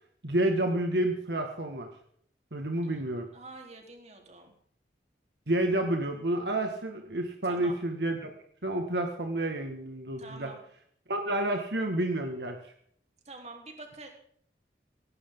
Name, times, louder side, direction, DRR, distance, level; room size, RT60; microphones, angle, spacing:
voice 1, 0.2-1.9 2.5-3.3 5.5-8.3 8.6-10.5 11.1-12.6, right 1 dB, 75° right, 4 dB, 2.1 m, -29 dB
voice 2, 3.3-4.5 7.4-7.8 10.2-10.6 13.2-14.1, right 2 dB, 40° right, 2 dB, 4.1 m, -46 dB
18.0 x 18.0 x 4.0 m, 0.62 s
head